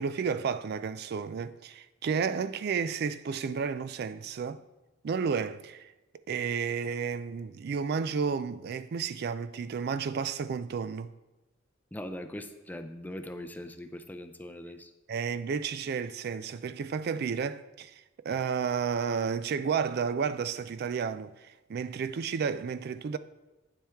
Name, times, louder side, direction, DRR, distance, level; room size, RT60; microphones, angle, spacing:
voice 1, 0.0-4.6 5.0-5.9 6.3-11.1 15.1-23.2, right 6 dB, 55° right, 0.3 m, -32 dB
voice 2, 11.9-14.9, left 1 dB, 10° left, 0.5 m, -41 dB
9.0 x 7.3 x 3.5 m
head